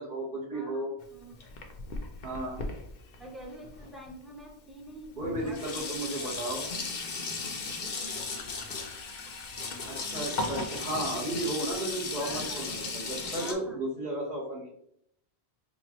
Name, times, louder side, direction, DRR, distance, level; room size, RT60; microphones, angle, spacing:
voice 1, 0.0-0.9 2.2-2.6 5.2-6.7 9.9-14.7, right 1 dB, 50° right, -7 dB, 1.2 m, -34 dB
voice 2, 0.5-1.4 3.2-6.3 12.2-12.8 13.4-13.8, equal, ahead, -1 dB, 0.5 m, -47 dB
Sink (filling or washing), 1.0-4.1 4.9-5.0 5.2-13.5, left 3 dB, 55° left, 0.6 m, -36 dB
4.3 x 2.3 x 2.9 m, 0.69 s
omnidirectional pair, 1.1 m